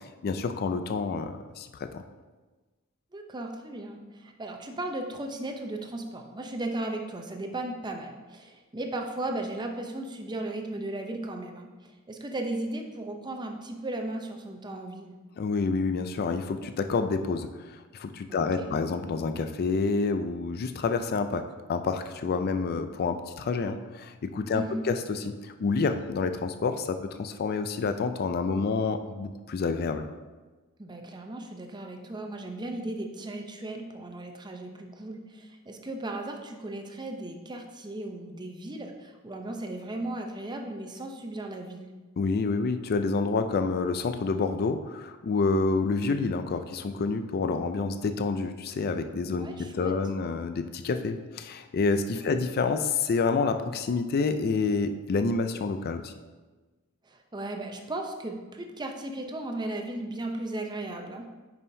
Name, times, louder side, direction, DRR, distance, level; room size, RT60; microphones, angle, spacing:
voice 1, 0.2-1.7 1.9-2.0 15.4-21.4 21.7-30.1 42.2-56.1, left 4 dB, 45° left, 8 dB, 0.4 m, -28 dB
voice 2, 3.1-15.1 18.3-18.7 24.5-24.8 30.8-41.9 49.3-49.9 52.1-52.3 57.0-61.3, right 2 dB, 20° right, 3 dB, 0.6 m, -36 dB
9.4 x 5.6 x 2.7 m, 1.3 s
head